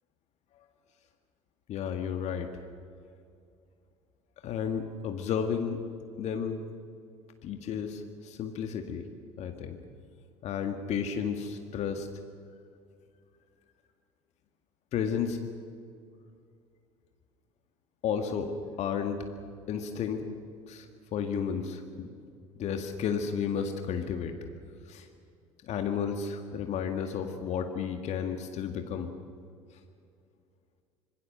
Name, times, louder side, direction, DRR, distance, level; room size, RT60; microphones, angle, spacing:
voice 1, 1.7-2.5 4.4-5.8 6.2-6.6 7.4-9.1 9.4-9.8 10.4-12.1 14.9-15.4 18.0-18.5 18.8-19.2 19.7-20.2 20.7-20.9 21.1-22.2 22.6-24.3 24.9-25.1 25.7-29.1, left 7 dB, 45° left, 6 dB, 2.0 m, -32 dB
25.5 x 22.5 x 6.8 m, 2.4 s
figure-of-eight pair, 65°, 15 cm